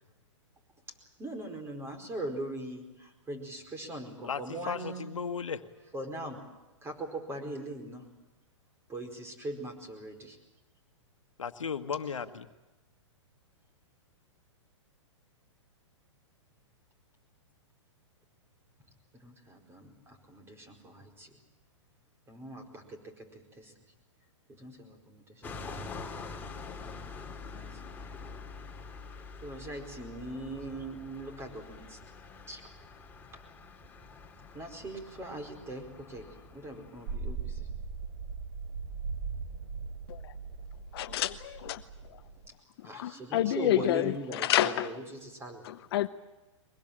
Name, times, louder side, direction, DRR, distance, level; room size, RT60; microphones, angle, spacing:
voice 1, 1.2-5.1 5.9-6.4 6.8-8.0 8.9-10.4 19.2-21.3 22.3-23.7 24.5-25.8 27.5-27.9 29.4-32.0 32.5-32.6 34.5-36.3 36.5-37.7 42.8-45.6, right 2 dB, 15° right, 5 dB, 4.8 m, -41 dB
voice 2, 4.2-5.6 11.4-12.5, left 6 dB, 90° left, 9 dB, 1.5 m, -35 dB
sound 1, 25.4-37.1, left 4 dB, 10° left, 2.7 m, -46 dB
sound 2, 37.1-42.5, right 5 dB, 40° right, 3.6 m, -39 dB
voice 3, 40.9-41.8 42.8-44.9 45.6-46.1, left 13 dB, 50° left, 11 dB, 0.8 m, -29 dB
23.0 x 21.0 x 8.9 m, 1.1 s
hypercardioid pair, 130°, 16 cm